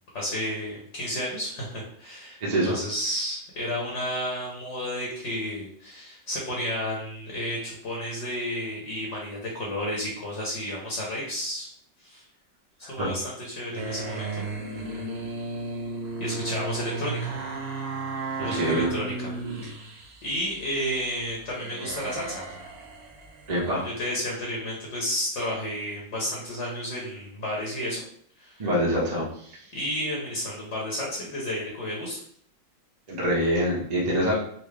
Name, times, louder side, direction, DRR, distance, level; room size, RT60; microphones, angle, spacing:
voice 1, 0.1-2.4 2.7-11.7 12.0-12.2 12.9-14.4 14.7-15.3 16.2-17.3 18.4-19.3 19.6-22.4 23.7-28.0 28.4-28.7 29.7-32.2, equal, 50° left, -3 dB, 1.0 m, -32 dB
voice 2, 2.4-2.7 13.0-13.1 18.4-18.9 23.5-23.8 28.6-29.6 33.1-34.3, equal, 35° right, -6 dB, 0.6 m, -25 dB
sound 1, 13.7-21.0 21.4-23.5, right 3 dB, 70° right, 1.0 m, -34 dB
4.3 x 2.1 x 3.2 m, 0.64 s
omnidirectional pair, 2.0 m